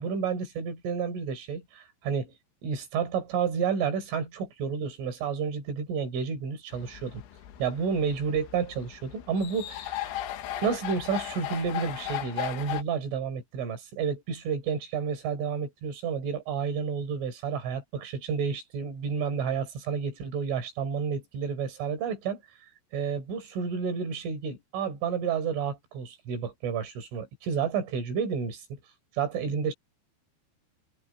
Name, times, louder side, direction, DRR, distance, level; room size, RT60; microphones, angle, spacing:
voice 1, 0.0-2.3 2.6-7.2 7.6-9.9 10.6-22.4 22.9-28.6 29.2-29.7, right 6 dB, 90° right, 6.8 m, -30 dB
sound 1, 6.7-12.8, left 12 dB, 80° left, 4.0 m, -37 dB
omnidirectional pair, 5.4 m